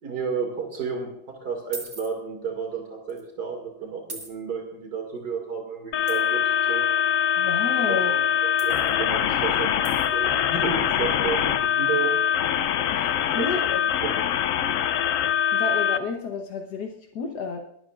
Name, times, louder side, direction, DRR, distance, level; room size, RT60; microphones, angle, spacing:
voice 1, 0.0-6.4 6.7-6.9 7.9-12.2 13.4-13.5 13.8-14.1, right 5 dB, 80° right, 1 dB, 2.9 m, -32 dB
sound 1, 1.7-2.1 3.1-3.2 4.1-4.3 6.1-6.3 8.6-9.0 9.8-10.1, right 3 dB, 45° right, 2.0 m, -38 dB
sound 2, 5.9-16.0, left 9 dB, 65° left, 0.9 m, -23 dB
voice 2, 7.4-8.2 12.9-13.8 15.5-17.6, left 5 dB, 85° left, 3 dB, 1.6 m, -31 dB
21.5 x 12.5 x 2.5 m, 0.74 s
omnidirectional pair, 1.7 m